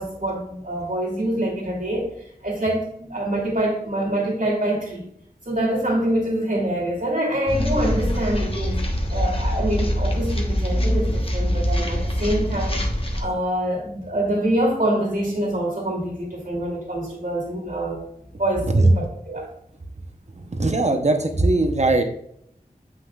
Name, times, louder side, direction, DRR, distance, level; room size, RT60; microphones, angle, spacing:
voice 1, 0.0-2.1 2.4-5.0 5.5-8.8 9.1-12.9 13.2-18.0 18.4-19.5, right 1 dB, 70° right, -3 dB, 2.8 m, -25 dB
sound 1, 7.5-13.2, equal, 40° left, 1.1 m, -24 dB
voice 2, 20.5-22.0, right 2 dB, 50° right, 5 dB, 0.9 m, -20 dB
7.7 x 6.1 x 2.4 m, 0.72 s
wide cardioid pair, 55°, 15 cm